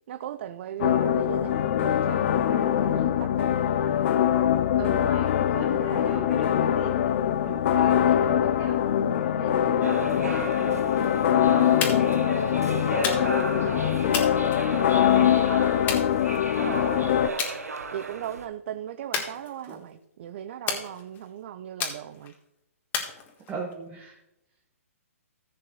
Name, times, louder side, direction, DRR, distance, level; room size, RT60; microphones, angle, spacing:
voice 1, 0.1-3.5 16.6-17.4 17.9-22.3, right 11 dB, 50° right, 11 dB, 0.5 m, -38 dB
sound 1, 0.8-17.3, left 10 dB, 50° left, 0.6 m, -23 dB
voice 2, 4.8-7.1 7.4-10.9 12.7-15.3 19.7-19.8 23.5-24.2, right 5 dB, 20° right, 0 dB, 1.4 m, -40 dB
sound 2, 9.8-18.5, right 3 dB, 85° right, 1.2 m, -35 dB
sound 3, 11.8-12.2 13.0-13.5 14.1-15.1 15.9-16.7 17.4-17.6 18.0-18.3 19.1-19.9 20.7-21.3 21.8-22.3 22.9-23.7, left 6 dB, 20° left, 1.6 m, -32 dB
15.0 x 7.6 x 3.1 m, 0.86 s
hypercardioid pair, 130°, 8 cm